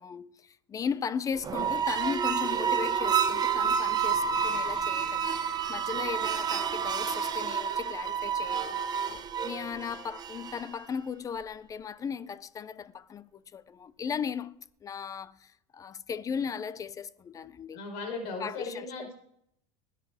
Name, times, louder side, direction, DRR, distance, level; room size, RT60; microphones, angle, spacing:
voice 1, 0.0-9.1 9.4-17.8 18.4-19.1, left 6 dB, 20° left, 0.5 m, -37 dB
sound 1, 1.4-10.8, right 7 dB, 20° right, 1.0 m, -29 dB
voice 2, 17.7-19.1, left 3 dB, 60° left, 5.3 m, -37 dB
20.5 x 9.2 x 4.9 m
supercardioid pair, 155°, 19 cm